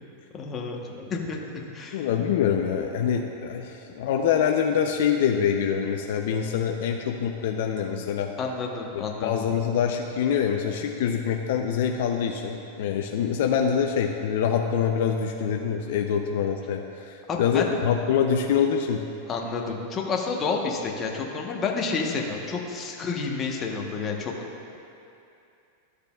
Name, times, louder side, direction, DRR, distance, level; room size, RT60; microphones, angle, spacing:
voice 1, 0.3-2.3 8.4-9.5 17.3-17.7 19.3-24.3, left 4 dB, 25° left, 0 dB, 1.0 m, -30 dB
voice 2, 1.9-8.3 8.9-19.0, left 8 dB, 70° left, 3 dB, 0.5 m, -25 dB
13.5 x 6.6 x 2.4 m, 2.7 s
supercardioid pair, 130°, 0 cm